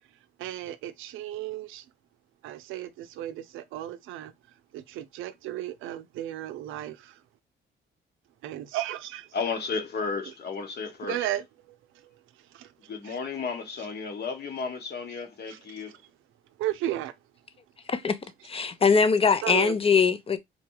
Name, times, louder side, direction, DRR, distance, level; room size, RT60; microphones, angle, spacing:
voice 1, 0.4-1.9 2.4-7.2 8.4-9.4 11.0-13.2 15.5-16.0 16.6-17.2 19.4-19.8, right 13 dB, 90° right, 0.5 m, -35 dB
voice 2, 9.3-11.2 12.9-16.0, left 5 dB, 55° left, 1.1 m, -33 dB
voice 3, 18.4-20.4, left 5 dB, 30° left, 0.5 m, -22 dB
4.1 x 2.3 x 2.8 m
cardioid pair, 90°, 20 cm